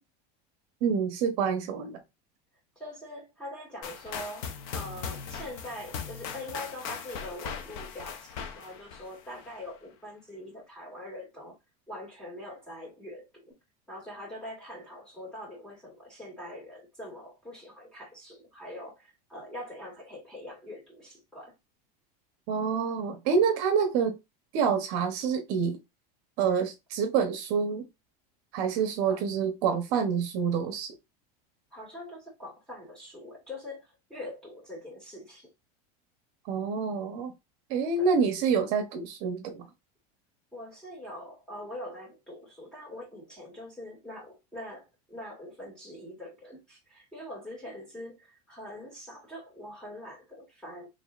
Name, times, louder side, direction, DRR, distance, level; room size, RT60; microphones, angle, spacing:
voice 1, 0.8-2.0 22.5-24.1 24.5-25.8 26.4-27.9 28.5-30.9 36.4-37.3 37.7-39.7, right 6 dB, 55° right, 0.9 m, -27 dB
voice 2, 2.8-11.6 11.9-13.5 13.9-21.5 29.1-29.2 31.7-35.5 38.0-38.1 40.5-50.9, left 1 dB, 5° left, 2.2 m, -43 dB
sound 1, 3.8-9.7, left 6 dB, 60° left, 0.9 m, -39 dB
4.9 x 3.1 x 2.5 m
supercardioid pair, 160°, 20 cm